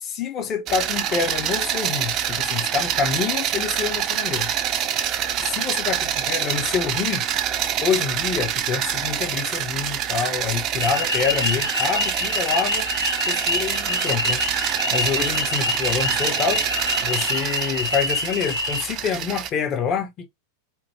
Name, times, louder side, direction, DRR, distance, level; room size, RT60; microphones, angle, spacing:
voice 1, 0.0-4.5 5.4-7.3 7.8-12.9 13.3-14.4 14.9-16.7 17.0-20.3, left 7 dB, 30° left, 0.6 m, -26 dB
sound 1, 0.7-19.5, right 9 dB, 35° right, 0.4 m, -26 dB
sound 2, 10.8-18.8, left 2 dB, 85° left, 0.6 m, -26 dB
2.9 x 2.1 x 3.3 m
figure-of-eight pair, 90°, 0 cm